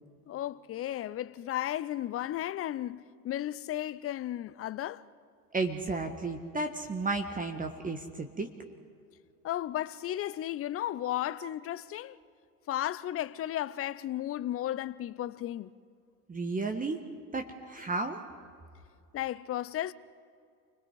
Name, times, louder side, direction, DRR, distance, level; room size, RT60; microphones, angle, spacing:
voice 1, 0.3-5.0 9.4-12.2 12.7-15.7 19.1-19.9, left 13 dB, 30° left, 0.7 m, -34 dB
voice 2, 5.5-8.5 16.3-17.0 17.3-18.2, right 3 dB, 15° right, 1.6 m, -33 dB
29.5 x 22.0 x 5.0 m
figure-of-eight pair, 75°, 49 cm